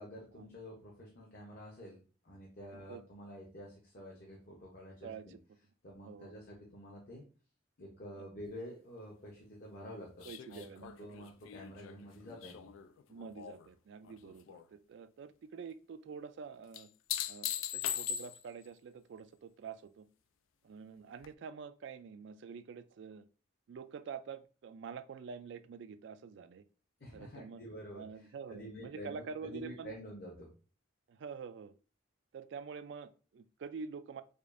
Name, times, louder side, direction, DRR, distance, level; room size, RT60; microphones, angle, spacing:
voice 1, 0.0-5.3 5.8-7.2 7.8-12.7 27.0-30.5, equal, 50° left, -2 dB, 0.8 m, -49 dB
voice 2, 5.0-5.4 6.0-6.3 8.2-8.3 10.2-10.9 11.2-11.3 13.1-16.9 17.3-20.1 20.6-23.3 23.7-26.6 27.1-27.6 27.9-29.9 31.1-31.7 32.3-34.2, right 5 dB, 60° right, 12 dB, 0.3 m, -47 dB
sound 1, 10.2-13.7 14.0-14.7 16.7-18.6 21.2-21.3, left 10 dB, 85° left, 0.3 m, -40 dB
5.0 x 2.4 x 2.5 m, 0.38 s
head